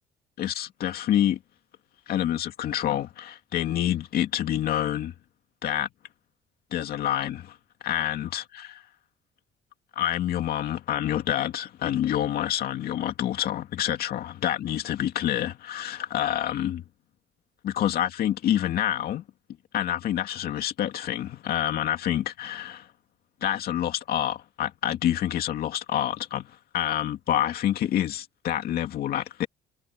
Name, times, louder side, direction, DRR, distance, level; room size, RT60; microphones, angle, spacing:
voice 1, 0.4-1.4 2.1-5.1 5.6-5.9 6.7-7.6 7.8-8.8 10.0-16.8 17.6-19.2 19.7-22.9 23.4-29.5, left 11 dB, 65° left, 2.3 m, -27 dB
cardioid pair, 110°, 17 cm